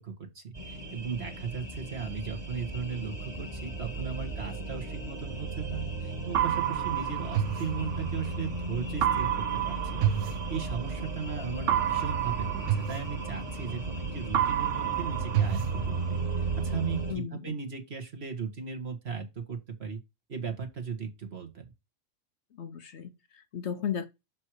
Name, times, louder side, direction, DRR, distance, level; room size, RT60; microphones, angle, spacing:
voice 1, 0.0-16.2 16.6-20.0 20.3-21.6, right 6 dB, 50° right, 1.9 m, -37 dB
sound 1, 0.6-17.1, right 3 dB, 30° right, 2.4 m, -35 dB
sound 2, 6.3-8.4 9.0-11.1 11.7-14.0 14.3-16.4, right 11 dB, 70° right, 1.0 m, -29 dB
voice 2, 17.1-17.5 22.5-24.1, left 8 dB, 60° left, 1.0 m, -35 dB
6.4 x 5.4 x 4.7 m
omnidirectional pair, 1.4 m